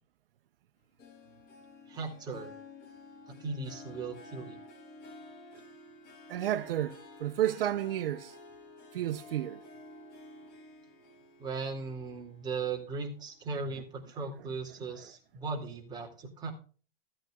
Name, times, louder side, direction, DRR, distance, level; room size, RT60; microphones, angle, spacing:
Harp, 1.0-13.7 14.1-14.5 15.0-15.1, left 2 dB, 30° left, 2.9 m, -52 dB
voice 1, 1.9-2.5 3.4-4.6 11.4-16.5, right 4 dB, 15° right, 2.4 m, -37 dB
voice 2, 6.3-8.3 8.9-9.6, right 12 dB, 70° right, 0.9 m, -31 dB
16.0 x 9.0 x 2.3 m
hypercardioid pair, 155°, 29 cm